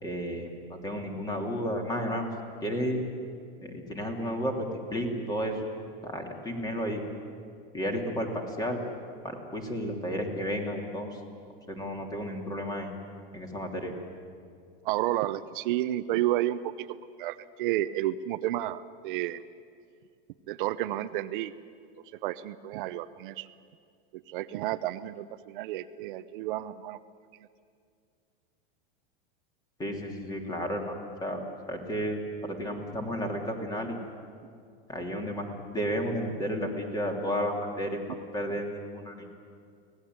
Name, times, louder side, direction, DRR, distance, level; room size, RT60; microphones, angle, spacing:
voice 1, 0.0-2.3 2.6-3.0 3.6-5.6 6.0-7.0 7.7-8.8 9.2-11.2 11.7-12.9 13.3-13.9 29.8-31.0 31.2-31.4 31.7-34.0 34.9-38.0 38.3-39.3, equal, 15° left, 3 dB, 3.0 m, -32 dB
voice 2, 14.8-16.9 17.2-19.4 20.5-21.5 22.1-23.5 24.1-27.0, right 14 dB, 60° right, 11 dB, 0.8 m, -31 dB
24.5 x 18.0 x 9.5 m, 2.3 s
supercardioid pair, 150°, 29 cm